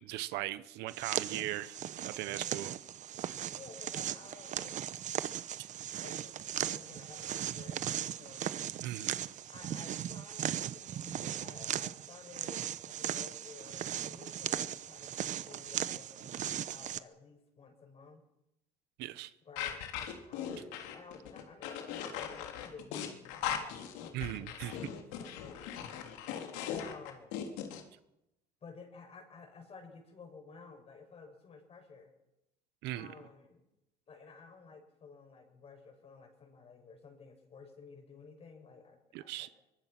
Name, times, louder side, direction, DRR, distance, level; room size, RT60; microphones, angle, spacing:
voice 1, 0.0-1.8 2.0-2.7 8.8-9.1 19.0-19.3 24.1-24.8 32.8-33.1 39.1-39.5, right 15 dB, 75° right, 14 dB, 1.2 m, -38 dB
sound 1, 0.9-17.0, right 10 dB, 45° right, 1.0 m, -38 dB
voice 2, 3.4-5.0 6.0-6.4 6.6-8.5 9.5-18.2 19.4-24.9 25.2-25.9 26.8-27.5 28.6-32.1 32.9-33.6 34.1-39.5, left 4 dB, 35° left, 4 dB, 7.2 m, -54 dB
sound 2, 19.6-27.8, left 9 dB, 85° left, 3.4 m, -39 dB
24.0 x 24.0 x 6.1 m, 0.89 s
cardioid pair, 125°, 18 cm